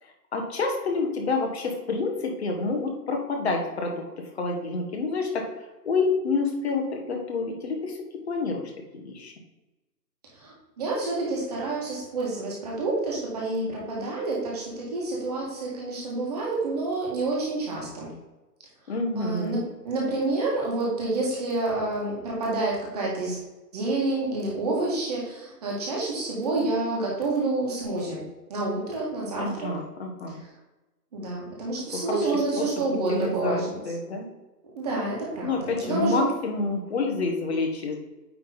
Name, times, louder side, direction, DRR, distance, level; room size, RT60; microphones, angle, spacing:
voice 1, 0.0-4.0 4.3-8.0 8.3-9.3 18.9-19.6 29.4-30.4 31.9-32.3 32.6-32.7 33.1-34.3 35.4-38.0, left 3 dB, 40° left, 2 dB, 1.4 m, -28 dB
voice 2, 10.3-18.1 19.1-23.4 23.7-28.2 28.5-29.7 31.1-33.8 34.8-36.4, right 2 dB, 25° right, -4 dB, 1.8 m, -28 dB
9.4 x 3.6 x 4.0 m, 1.1 s
hypercardioid pair, 170°, 50 cm